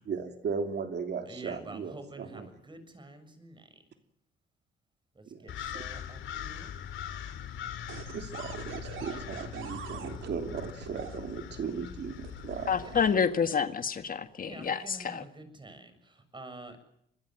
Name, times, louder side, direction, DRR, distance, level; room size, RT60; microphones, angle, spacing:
voice 1, 0.1-2.5 5.3-5.4 5.7-5.8 8.1-12.7, right 6 dB, 60° right, 6 dB, 2.9 m, -37 dB
voice 2, 1.3-3.7 5.2-6.7 12.8-13.1 14.4-16.8, right 2 dB, 25° right, 10 dB, 7.1 m, -48 dB
sound 1, 5.5-13.1, left 10 dB, 75° left, 3.7 m, -41 dB
sound 2, 7.9-11.2 12.2-13.9 14.5-14.9, right 9 dB, 80° right, 3.6 m, -44 dB
voice 3, 12.7-15.2, left 6 dB, 45° left, 9 dB, 1.8 m, -28 dB
26.0 x 22.0 x 7.8 m, 0.76 s
cardioid pair, 90°, 20 cm